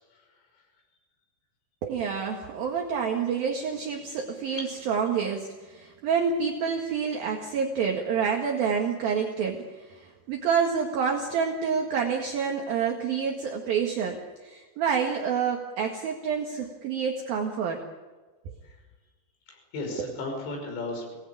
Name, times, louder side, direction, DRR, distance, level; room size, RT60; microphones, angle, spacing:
voice 1, 1.8-17.8, right 6 dB, 60° right, 1 dB, 3.3 m, -28 dB
voice 2, 19.5-21.1, left 2 dB, 70° left, 2 dB, 8.0 m, -35 dB
28.5 x 19.5 x 8.7 m, 1.3 s
omnidirectional pair, 5.4 m